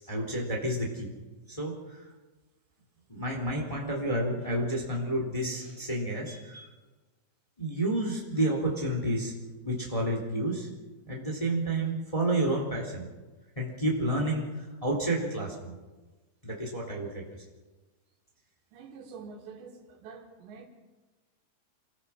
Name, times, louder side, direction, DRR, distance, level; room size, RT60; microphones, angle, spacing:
voice 1, 0.1-1.1 1.5-2.0 3.1-6.7 7.6-9.3 9.6-10.7 11.0-13.1 13.5-15.8 16.4-17.2, right 1 dB, 10° left, 0 dB, 2.9 m, -30 dB
voice 2, 18.7-20.7, right 5 dB, 85° right, 3 dB, 4.5 m, -46 dB
26.5 x 19.5 x 6.0 m, 1.2 s
omnidirectional pair, 4.9 m